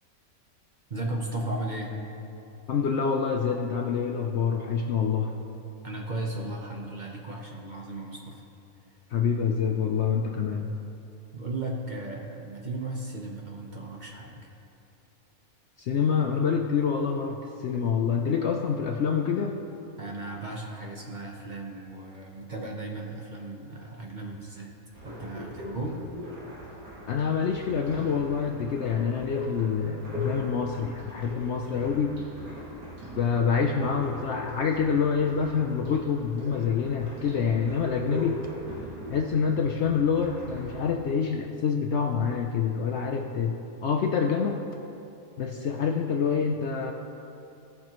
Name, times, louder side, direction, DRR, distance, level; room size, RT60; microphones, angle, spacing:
voice 1, 0.9-1.9 5.8-8.4 11.3-14.5 20.0-24.7 25.0-26.1, right 2 dB, 40° right, -1 dB, 0.9 m, -35 dB
voice 2, 2.7-5.3 9.1-10.7 15.8-19.6 27.0-32.2 33.2-38.4 39.1-44.6 45.4-46.9, left 6 dB, 65° left, 3 dB, 0.7 m, -26 dB
sound 1, 24.9-40.9, left 1 dB, 75° right, 2.5 m, -40 dB
17.5 x 6.1 x 3.0 m, 2.8 s
omnidirectional pair, 1.5 m